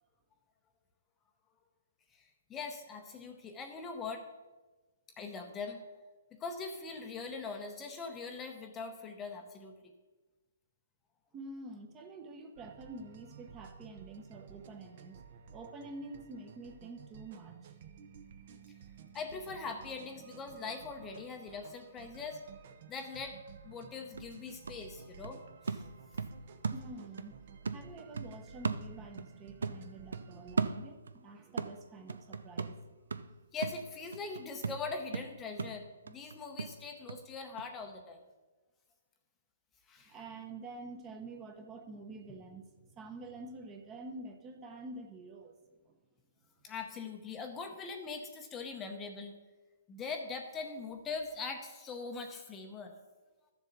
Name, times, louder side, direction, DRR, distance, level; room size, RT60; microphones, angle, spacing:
voice 1, 2.1-4.2 5.2-5.9 6.3-9.7 19.1-22.4 22.9-23.4 23.6-25.4 25.7-25.8 33.5-38.2 39.9-40.2 46.6-49.3 49.9-52.9, left 4 dB, 15° left, 4 dB, 0.8 m, -42 dB
voice 2, 11.3-15.2 15.5-17.7 26.7-32.8 40.0-45.6 45.9-46.0, right 2 dB, 20° right, 5 dB, 1.0 m, -48 dB
sound 1, 12.6-30.6, right 6 dB, 50° right, 0.9 m, -54 dB
sound 2, 23.7-23.8 24.2-27.3 27.7-29.4 29.6-31.2 31.6-37.2 37.6-37.7, right 4 dB, 90° right, 0.5 m, -38 dB
13.0 x 7.1 x 4.0 m, 1.2 s
hypercardioid pair, 155°, 0 cm